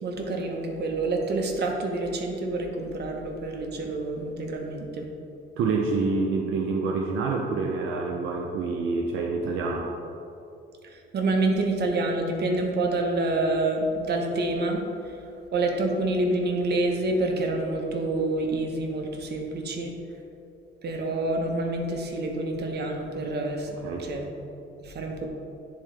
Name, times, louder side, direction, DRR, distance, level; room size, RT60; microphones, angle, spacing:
voice 1, 0.0-5.1 10.8-14.8 15.5-19.9 20.8-23.7 24.0-24.3 24.8-25.3, right 2 dB, 55° right, 2 dB, 1.0 m, -27 dB
voice 2, 5.6-9.9 23.7-24.1, right 4 dB, 90° right, 1 dB, 0.6 m, -27 dB
10.0 x 3.7 x 3.3 m, 2.7 s
cardioid pair, 90°, 20 cm